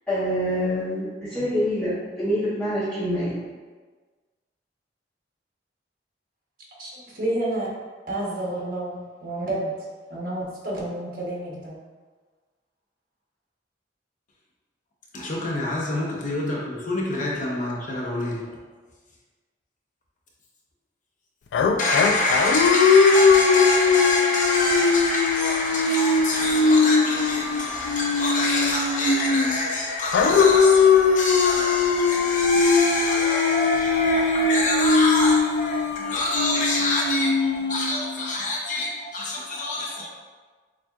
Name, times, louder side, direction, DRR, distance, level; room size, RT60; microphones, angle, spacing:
voice 1, 0.1-3.3, equal, 5° left, -12 dB, 0.8 m, -26 dB
voice 2, 6.8-7.7 8.1-9.8 10.1-11.8, right 1 dB, 55° right, -4 dB, 1.1 m, -30 dB
voice 3, 15.1-18.6 21.8-40.1, left 2 dB, 45° left, -3 dB, 0.7 m, -26 dB
sound 1, 21.5-29.6 30.1-38.2, left 4 dB, 90° left, 0.3 m, -20 dB
7.0 x 2.4 x 2.4 m, 1.4 s
head